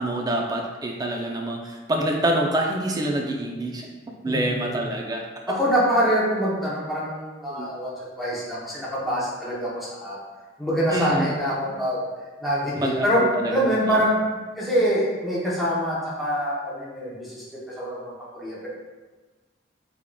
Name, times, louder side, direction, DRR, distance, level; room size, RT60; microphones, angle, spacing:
voice 1, 0.0-3.9 4.2-5.2 7.5-7.7 10.9-11.3 12.8-14.1, right 1 dB, 20° right, 1 dB, 0.3 m, -26 dB
voice 2, 4.3-4.9 5.5-10.2 10.6-12.0 12.4-13.2 13.5-14.2 14.6-17.4 17.7-18.7, equal, ahead, -8 dB, 0.7 m, -25 dB
3.6 x 3.5 x 2.2 m, 1.3 s
head